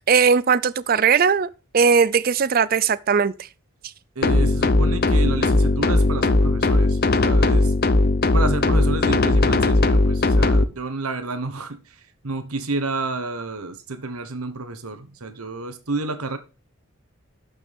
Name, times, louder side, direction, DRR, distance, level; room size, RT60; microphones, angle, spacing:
voice 1, 0.1-1.5 1.7-3.5, right 6 dB, 40° right, 0.4 m, -18 dB
voice 2, 4.1-7.7 8.3-16.4, right 3 dB, 85° right, 1.3 m, -30 dB
sound 1, 4.2-10.6, left 2 dB, 45° left, 0.6 m, -18 dB
12.5 x 6.2 x 3.5 m
head